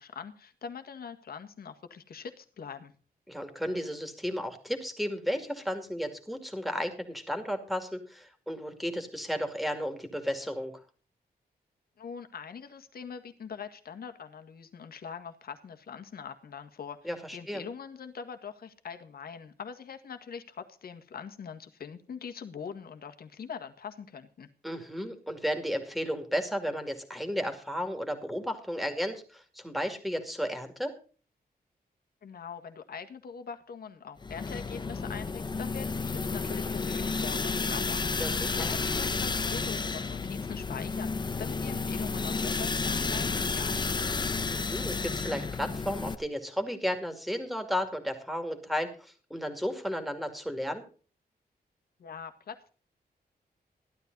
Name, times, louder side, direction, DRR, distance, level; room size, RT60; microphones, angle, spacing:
voice 1, 0.0-2.9 12.0-24.5 32.2-44.2 52.0-52.7, left 6 dB, 70° left, 8 dB, 1.8 m, -43 dB
voice 2, 3.3-10.7 17.0-17.6 24.6-30.9 38.2-38.7 44.5-50.8, equal, ahead, 6 dB, 2.4 m, -33 dB
sound 1, 34.2-46.1, left 4 dB, 30° left, 0.8 m, -31 dB
15.0 x 12.0 x 4.0 m, 0.39 s
wide cardioid pair, 165°, 16 cm